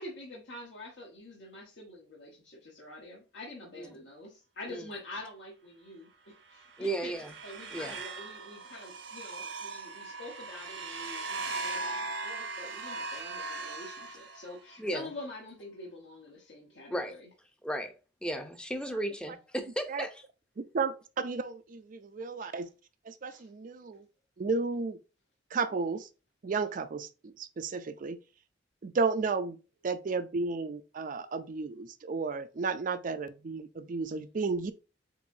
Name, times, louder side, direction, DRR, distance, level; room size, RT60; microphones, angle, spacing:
voice 1, 0.0-7.1 7.4-17.3 22.4-22.5 23.2-23.5, left 2 dB, 75° left, 1.2 m, -46 dB
sound 1, 6.5-14.8, right 3 dB, 80° right, 1.0 m, -39 dB
voice 2, 6.8-7.3 7.7-8.0 14.8-15.1 16.9-17.1 17.6-17.9 18.2-20.2, right 1 dB, 5° left, 0.6 m, -34 dB
voice 3, 20.6-22.7 23.1-24.0 24.4-25.0 25.5-26.1 26.4-28.2 28.8-29.6 29.8-34.7, right 4 dB, 45° right, 0.4 m, -33 dB
7.0 x 2.6 x 2.7 m
head